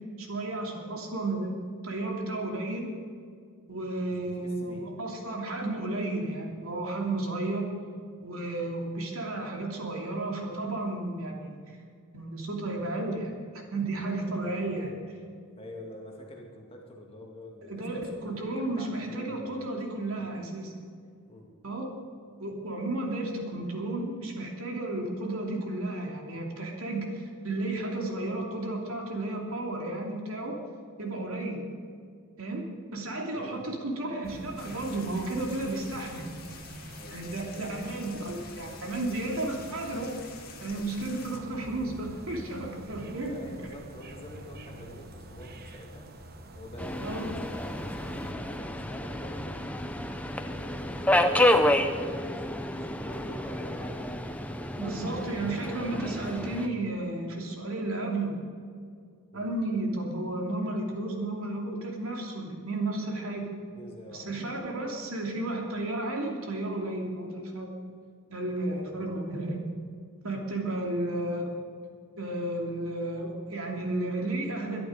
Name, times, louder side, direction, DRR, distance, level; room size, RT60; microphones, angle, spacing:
voice 1, 0.2-2.9 3.7-7.7 8.2-11.6 12.1-14.9 17.7-20.7 21.6-21.9 22.4-30.6 31.0-31.6 32.4-32.6 32.9-36.3 37.1-40.1 40.6-43.3 47.0-47.3 48.1-48.2 54.8-58.3 59.3-63.5 64.1-67.7 68.3-69.6 70.2-71.5 72.2-74.8, right 2 dB, 75° right, 0 dB, 2.9 m, -33 dB
voice 2, 4.1-4.9 14.4-14.8 15.6-19.7 20.2-20.3 21.3-21.5 33.3-33.8 37.0-37.8 42.9-46.1 46.5-49.9 50.3-54.1 54.7-56.7 59.3-59.5 63.7-64.5 68.7-69.1, equal, 25° left, 0 dB, 2.3 m, -47 dB
sound 1, 34.2-48.3, right 1 dB, 45° right, 1.2 m, -46 dB
sound 2, 34.6-41.4, left 7 dB, 45° left, 1.9 m, -49 dB
Subway metro underground, 46.8-56.7, left 1 dB, 5° left, 0.6 m, -29 dB
22.0 x 11.0 x 5.2 m, 2.2 s
head